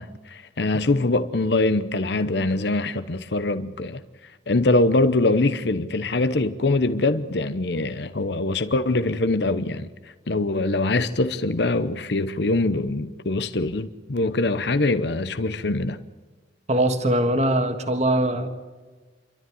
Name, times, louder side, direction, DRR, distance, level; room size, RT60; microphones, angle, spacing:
voice 1, 0.0-4.0 4.5-9.9 10.3-16.0, left 2 dB, 65° left, 0.8 m, -23 dB
voice 2, 16.7-18.5, right 1 dB, 35° right, 1.6 m, -21 dB
28.5 x 13.0 x 9.5 m
head